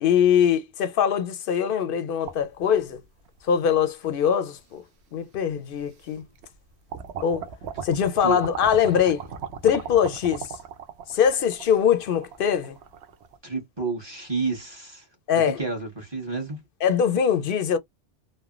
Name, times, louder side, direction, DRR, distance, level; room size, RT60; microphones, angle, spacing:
voice 1, 0.0-3.0 3.4-4.8 5.1-6.2 7.2-7.4 7.8-9.2 9.6-10.5 11.1-12.8 15.3-15.6 16.8-17.8, left 8 dB, 60° left, 0.6 m, -22 dB
sound 1, 2.2-3.4 4.2-4.3 5.5-5.6 6.0-6.6 6.9-13.4, right 7 dB, 70° right, 0.9 m, -38 dB
voice 2, 13.4-15.1 15.3-16.6, right 4 dB, 25° right, 1.1 m, -30 dB
3.1 x 2.1 x 2.4 m
omnidirectional pair, 1.2 m